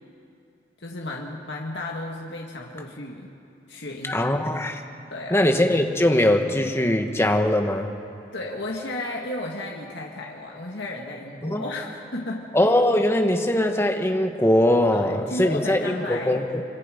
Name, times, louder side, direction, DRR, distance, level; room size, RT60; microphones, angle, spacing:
voice 1, 0.8-3.3 3.7-4.3 5.1-5.5 8.3-12.5 14.9-16.5, left 2 dB, 80° left, -1 dB, 1.9 m, -33 dB
voice 2, 4.0-4.8 5.3-7.9 11.4-11.6 12.5-16.6, left 1 dB, 15° left, 4 dB, 1.4 m, -21 dB
26.0 x 24.5 x 5.2 m, 2.7 s
head